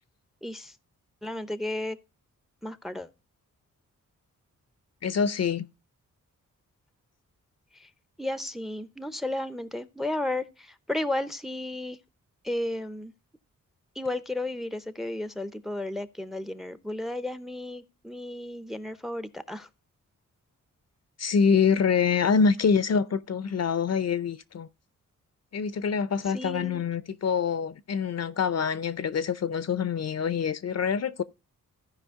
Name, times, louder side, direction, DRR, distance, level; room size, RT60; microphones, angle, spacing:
voice 1, 0.4-0.8 1.2-2.0 2.6-3.1 7.7-7.9 8.2-12.0 12.4-13.1 13.9-19.7 26.3-26.8, left 1 dB, ahead, 0.6 m, -33 dB
voice 2, 5.0-5.7 21.2-24.7 25.5-31.2, left 6 dB, 55° left, 0.6 m, -25 dB
14.5 x 4.9 x 3.6 m
cardioid pair, 75°, 32 cm